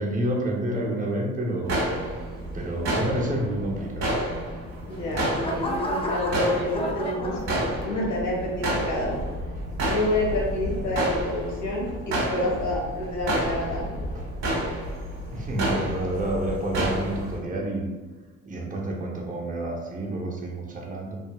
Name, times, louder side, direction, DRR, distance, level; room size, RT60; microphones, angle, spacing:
voice 1, 0.0-1.8 2.5-4.3 14.1-14.3 15.3-17.9 18.5-21.2, right 1 dB, 25° right, -1 dB, 0.7 m, -29 dB
sound 1, 1.6-17.4, right 1 dB, 60° right, 0.8 m, -30 dB
sound 2, 4.6-8.2 8.7-9.0, equal, 20° left, 0.3 m, -33 dB
voice 2, 4.9-7.4 7.8-9.3 9.8-14.0, left 1 dB, 70° left, -4 dB, 1.1 m, -28 dB
2.7 x 2.6 x 2.2 m, 1.3 s
cardioid pair, 90°, 30 cm